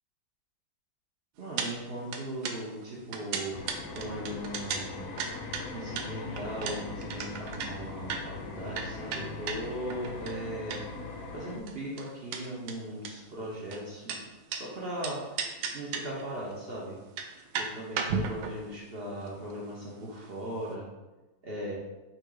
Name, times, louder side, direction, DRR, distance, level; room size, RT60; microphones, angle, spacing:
voice 1, 1.4-3.6 3.9-5.1 5.7-10.8 11.3-14.2 14.5-15.2 15.7-17.0 17.6-20.9 21.4-21.7, right 1 dB, 55° right, -4 dB, 0.6 m, -38 dB
sound 1, 1.6-1.7 2.0-11.1 11.3-14.6 15.0-16.2 16.5-16.6 17.0-20.4 20.7-20.8, right 5 dB, 85° right, 1.3 m, -36 dB
sound 2, 3.5-11.6, left 3 dB, 80° left, 0.7 m, -41 dB
3.8 x 2.7 x 4.7 m, 1.1 s
omnidirectional pair, 2.1 m